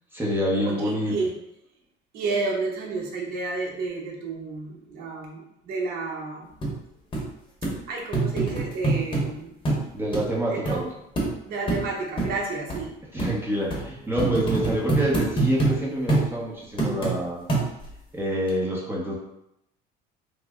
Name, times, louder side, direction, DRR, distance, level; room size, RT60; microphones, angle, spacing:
voice 1, 0.1-1.1 9.9-10.8 13.1-17.4 18.1-19.2, equal, 10° right, -5 dB, 0.8 m, -27 dB
voice 2, 0.6-1.3 2.1-6.5 7.9-9.5 10.5-10.9 11.4-12.9 13.5-13.6, right 3 dB, 55° right, -1 dB, 0.7 m, -31 dB
sound 1, 6.6-6.7 7.1-7.2 7.6-7.8 8.1-9.3 9.7-9.8 10.1-10.2 10.7-10.8 11.2-11.3 11.7-11.8 12.2-12.3 12.7-12.8 13.2-13.3 13.7-13.8 14.2-15.8 16.1-16.3 16.8-17.2 17.5-17.9 18.5-18.6, right 3 dB, 25° left, 0.9 m, -24 dB
3.2 x 2.0 x 3.5 m, 0.80 s
cardioid pair, 120°, 18 cm